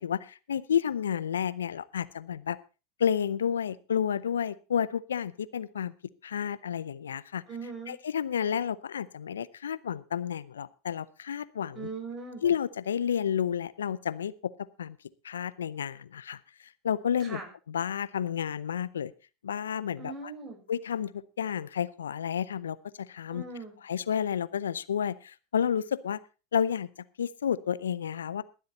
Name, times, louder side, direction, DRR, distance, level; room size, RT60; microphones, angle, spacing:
voice 1, 0.0-2.6 3.0-5.9 6.2-7.4 7.9-11.9 12.4-14.5 14.8-15.0 15.2-16.4 16.8-17.4 17.7-19.1 19.4-20.3 20.7-23.4 23.8-26.2 26.5-26.9 27.2-28.4, left 8 dB, 85° left, 17 dB, 0.6 m, -31 dB
voice 2, 7.5-8.0 11.7-12.4 17.2-17.5 20.0-20.6 23.3-23.8, right 4 dB, 30° right, 3 dB, 5.9 m, -40 dB
21.0 x 7.8 x 4.1 m, 0.31 s
hypercardioid pair, 85°, 0 cm